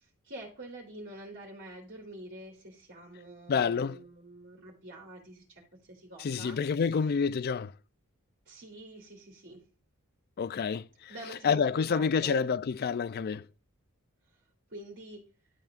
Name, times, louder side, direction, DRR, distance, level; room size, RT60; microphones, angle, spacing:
voice 1, 0.2-6.6 8.5-9.6 11.1-12.4 14.7-15.2, right 1 dB, 55° right, 2.5 m, -47 dB
voice 2, 3.5-4.0 6.2-7.7 10.4-11.1 11.4-13.4, left 6 dB, 45° left, 0.4 m, -28 dB
12.0 x 7.0 x 2.5 m
head